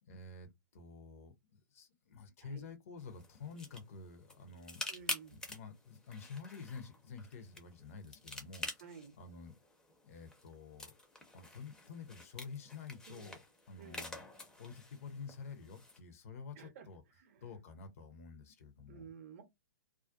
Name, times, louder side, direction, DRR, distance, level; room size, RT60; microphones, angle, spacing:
voice 1, 0.0-4.8 5.3-9.5 10.0-10.9 11.3-13.4 13.7-14.2 14.6-17.0 17.4-19.1, left 5 dB, 45° left, 0.6 m, -49 dB
sound 1, 3.0-16.0, left 2 dB, 5° left, 0.5 m, -48 dB
voice 2, 4.9-5.3 8.8-9.1 13.1-13.3 13.8-14.0 16.6-16.9 17.2-17.6 18.9-19.4, right 7 dB, 40° right, 0.6 m, -53 dB
2.4 x 2.2 x 2.5 m
figure-of-eight pair, 115°, 10 cm